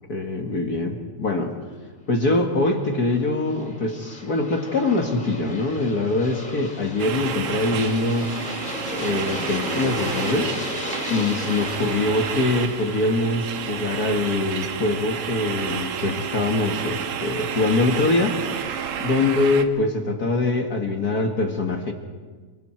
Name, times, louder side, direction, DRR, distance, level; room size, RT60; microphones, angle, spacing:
voice 1, 0.1-1.5 2.1-8.3 8.9-10.5 11.1-18.4 19.0-21.9, left 2 dB, 40° left, 3 dB, 1.6 m, -23 dB
Aircraft, 2.8-15.5, left 2 dB, 20° left, 2.1 m, -35 dB
sound 1, 7.0-19.7, right 8 dB, 60° right, 1.8 m, -31 dB
28.0 x 23.5 x 4.4 m, 1.5 s
omnidirectional pair, 3.4 m